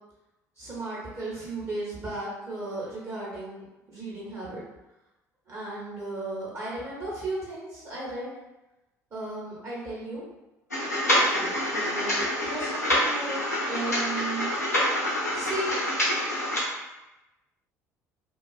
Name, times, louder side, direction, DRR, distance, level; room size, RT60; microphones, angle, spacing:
voice 1, 0.6-4.6 5.5-8.3 9.1-10.2 11.3-14.5 15.3-15.7, right 2 dB, 30° right, -7 dB, 1.0 m, -35 dB
sound 1, 10.7-16.6, left 1 dB, 85° left, 0.5 m, -26 dB
2.4 x 2.3 x 2.3 m, 0.97 s
figure-of-eight pair, 55°, 9 cm